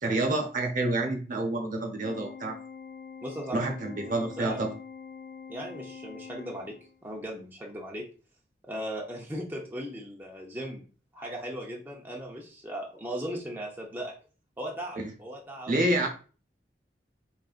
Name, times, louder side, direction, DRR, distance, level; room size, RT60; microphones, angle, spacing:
voice 1, 0.0-2.6 3.5-4.7 15.0-15.1 15.7-16.1, right 2 dB, 50° right, 4 dB, 0.8 m, -28 dB
Organ, 2.0-7.1, left 6 dB, 50° left, 0.4 m, -45 dB
voice 2, 3.2-3.7 4.4-4.6 5.5-6.8 7.0-8.1 8.6-10.8 11.1-14.1 14.6-15.7 16.0-16.1, equal, 10° right, -1 dB, 0.6 m, -37 dB
3.9 x 3.8 x 2.4 m, 0.37 s
head